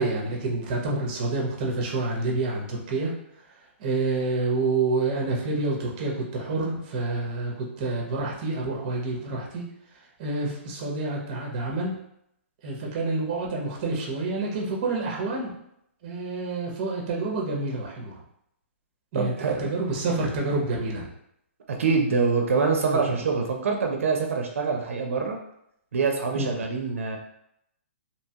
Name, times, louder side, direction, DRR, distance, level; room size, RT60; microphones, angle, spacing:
voice 1, 0.0-3.1 3.8-9.6 10.2-11.9 12.6-15.5 16.0-18.1 19.1-21.1 22.9-23.1 26.3-26.5, right 3 dB, 30° right, -2 dB, 0.6 m, -28 dB
voice 2, 19.1-19.7 21.7-25.4 25.9-27.2, right 4 dB, 80° right, 2 dB, 0.5 m, -25 dB
2.8 x 2.2 x 2.7 m, 0.76 s
hypercardioid pair, 160°, 7 cm